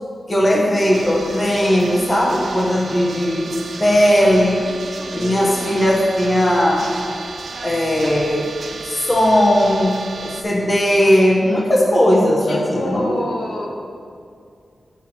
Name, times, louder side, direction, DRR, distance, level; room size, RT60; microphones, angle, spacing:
voice 1, 0.3-3.4 3.8-4.7 5.1-6.9 7.6-8.5 8.8-13.1, equal, 20° left, -2 dB, 1.2 m, -17 dB
sound 1, 0.9-10.4, right 4 dB, 60° right, 0.7 m, -34 dB
voice 2, 5.0-5.8 12.5-13.7, left 1 dB, 70° left, -2 dB, 1.2 m, -28 dB
9.3 x 6.2 x 4.3 m, 2.3 s
wide cardioid pair, 170°, 0 cm